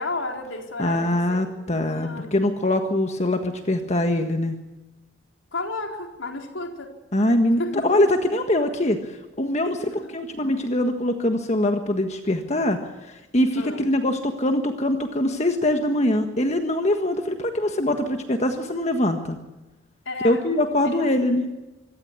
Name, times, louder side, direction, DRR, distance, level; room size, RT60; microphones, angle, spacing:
voice 1, 0.0-2.4 5.5-6.9 7.6-7.9 9.6-9.8 13.6-13.8 20.1-20.4 20.8-21.4, left 2 dB, 75° left, 2 dB, 4.2 m, -33 dB
voice 2, 0.8-4.6 7.1-9.8 10.1-12.8 13.1-19.4 20.2-21.5, left 1 dB, 35° left, 6 dB, 1.5 m, -23 dB
26.0 x 15.5 x 9.6 m, 1.0 s
head